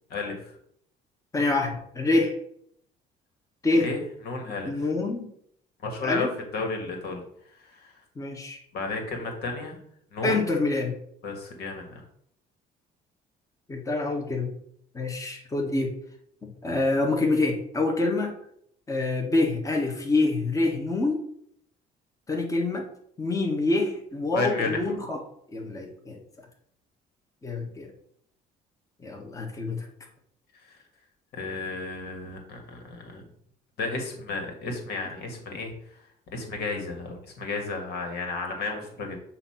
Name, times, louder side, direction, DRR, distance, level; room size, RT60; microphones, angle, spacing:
voice 1, 0.1-0.5 3.8-4.9 5.8-7.2 7.6-8.0 8.7-9.8 10.1-10.4 11.2-12.0 24.3-24.9 30.5-30.8 31.3-33.2 33.8-36.0 36.3-39.2, left 3 dB, 70° left, 4 dB, 1.7 m, -33 dB
voice 2, 1.3-2.3 3.6-3.9 4.6-5.3 6.0-6.3 8.2-8.6 10.2-10.9 13.7-14.5 14.9-15.9 16.4-18.3 18.9-21.2 22.3-22.8 23.2-25.2 25.5-26.2 27.4-27.9 29.0-29.8, left 2 dB, 20° left, 1 dB, 1.4 m, -26 dB
8.2 x 2.8 x 5.8 m, 0.68 s
cardioid pair, 110°, 17 cm